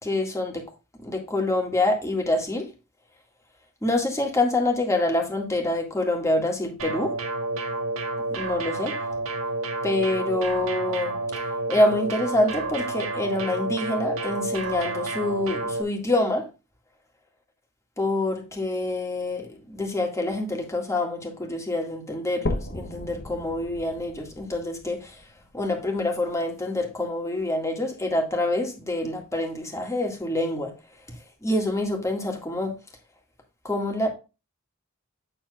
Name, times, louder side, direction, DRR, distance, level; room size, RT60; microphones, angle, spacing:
voice 1, 0.0-0.7 1.0-2.7 3.8-7.1 8.3-9.0 9.8-11.2 11.7-16.5 18.0-25.2 25.5-30.7 31.4-32.8 33.6-34.1, left 2 dB, 15° left, 2.0 m, -26 dB
sound 1, 6.8-15.8, right 2 dB, 80° right, 1.5 m, -30 dB
sound 2, 22.5-26.5 27.0-27.1 27.7-27.8 28.1-28.2 29.0-29.1, left 1 dB, 50° left, 1.0 m, -35 dB
8.7 x 7.2 x 2.4 m
head